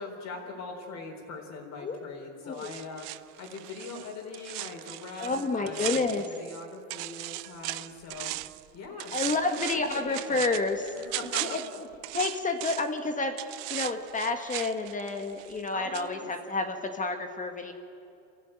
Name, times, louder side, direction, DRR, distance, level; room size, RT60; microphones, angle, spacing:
voice 1, 0.0-10.4 11.0-11.8 15.7-16.3, left 3 dB, 45° left, 1 dB, 4.0 m, -42 dB
sound 1, 2.6-6.6 6.9-8.6 9.0-13.0 13.4-15.7 15.9-16.1, right 20 dB, 60° right, 0.7 m, -37 dB
voice 2, 5.2-6.3 9.1-10.9 11.4-11.6 12.1-13.4 13.7-17.7, left 3 dB, 20° left, 6 dB, 1.6 m, -30 dB
24.0 x 15.5 x 9.0 m, 2.8 s
supercardioid pair, 115°, 38 cm